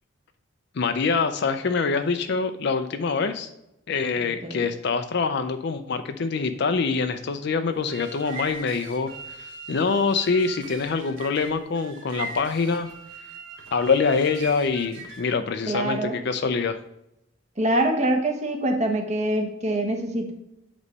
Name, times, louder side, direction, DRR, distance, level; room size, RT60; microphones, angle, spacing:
voice 1, 0.8-3.5 3.9-9.1 9.4-12.9 13.7-16.8, left 4 dB, 60° left, 9 dB, 0.5 m, -25 dB
sound 1, 7.7-15.4, right 3 dB, 75° right, 1.3 m, -40 dB
voice 2, 15.7-16.2 17.6-20.3, right 1 dB, 35° right, 3 dB, 1.1 m, -24 dB
8.1 x 3.2 x 5.2 m, 0.84 s
head